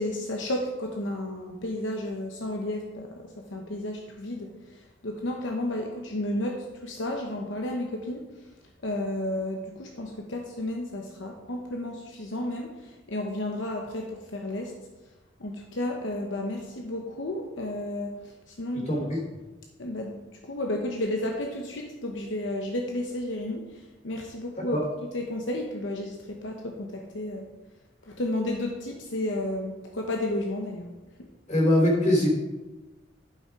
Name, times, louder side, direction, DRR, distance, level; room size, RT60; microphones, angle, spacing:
voice 1, 0.0-8.3 8.8-14.7 15.4-19.2 19.8-27.4 28.0-30.9, left 1 dB, 85° left, 2 dB, 1.0 m, -32 dB
voice 2, 18.9-19.2 24.6-24.8 31.5-32.3, left 1 dB, 40° left, -2 dB, 3.5 m, -22 dB
11.5 x 5.9 x 4.8 m, 1.1 s
head